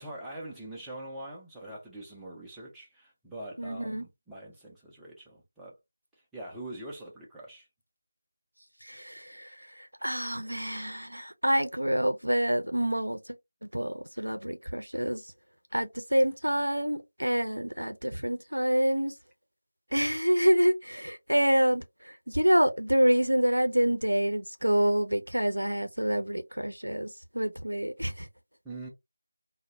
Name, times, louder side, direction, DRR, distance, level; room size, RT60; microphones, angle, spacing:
voice 1, 0.0-5.8 6.3-7.7 28.6-28.9, right 1 dB, 5° right, 0.4 m, -43 dB
voice 2, 3.6-4.0 8.8-13.2 13.6-15.2 15.7-19.1 19.9-27.1 27.3-28.3, equal, 85° right, 0.5 m, -27 dB
2.2 x 2.1 x 2.8 m
figure-of-eight pair, 165°, 0 cm